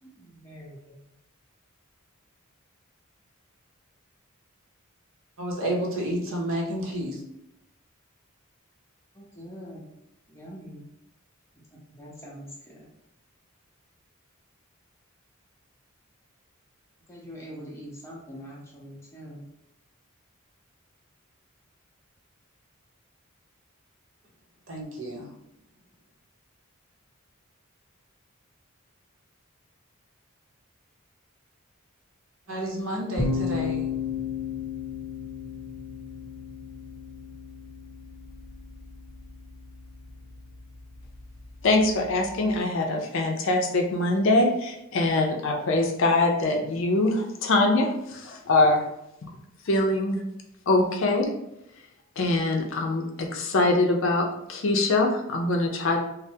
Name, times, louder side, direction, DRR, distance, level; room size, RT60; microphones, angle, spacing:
voice 1, 0.0-1.0 9.1-9.9 10.3-10.9 11.5-12.9 17.1-19.5 32.5-33.0, equal, 10° left, -4 dB, 0.7 m, -44 dB
voice 2, 5.4-7.2 24.7-25.2 32.5-33.9, right 1 dB, 60° right, -1 dB, 0.7 m, -30 dB
sound 1, 33.2-42.6, left 5 dB, 10° right, 1.1 m, -35 dB
voice 3, 41.6-48.8 49.2-49.3 49.7-50.2 50.7-51.3 52.2-56.0, left 2 dB, 60° left, 2 dB, 0.5 m, -23 dB
3.3 x 2.0 x 2.7 m, 0.85 s
head